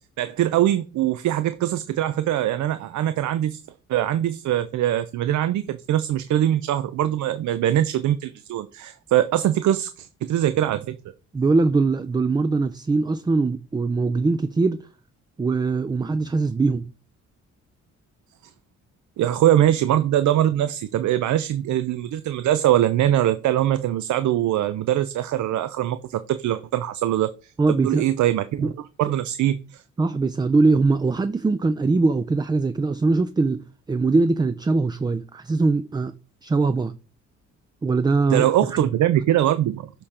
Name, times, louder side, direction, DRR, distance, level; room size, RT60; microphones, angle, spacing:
voice 1, 0.2-3.6 3.9-11.0 18.4-18.5 19.2-28.7 29.0-29.8 38.3-39.9, right 12 dB, 70° right, 0.5 m, -22 dB
voice 2, 11.3-14.8 15.4-16.9 27.6-28.0 28.6-28.7 30.0-36.1 36.4-36.9 37.8-38.5, right 3 dB, 15° right, 0.3 m, -21 dB
6.8 x 3.7 x 4.2 m
cardioid pair, 90°, 31 cm